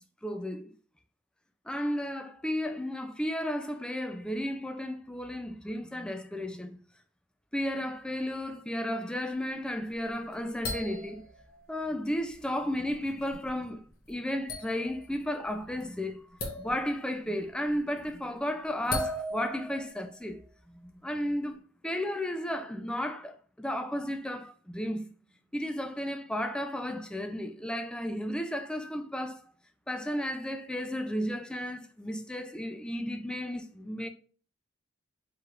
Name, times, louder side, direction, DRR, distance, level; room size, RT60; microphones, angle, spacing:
voice 1, 0.2-0.7 1.7-6.8 7.5-11.2 11.7-13.8 14.1-16.3 16.6-20.4 20.7-25.1 25.5-29.4 29.9-34.1, equal, 5° left, 0.3 m, -33 dB
sound 1, 9.9-11.7 12.3-12.5 12.9-13.5 14.0-14.1 14.5-15.2 15.4-15.8 16.4-17.1 17.7-18.1 18.8-20.2, left 1 dB, 50° left, 1.0 m, -37 dB
4.8 x 3.1 x 2.4 m
head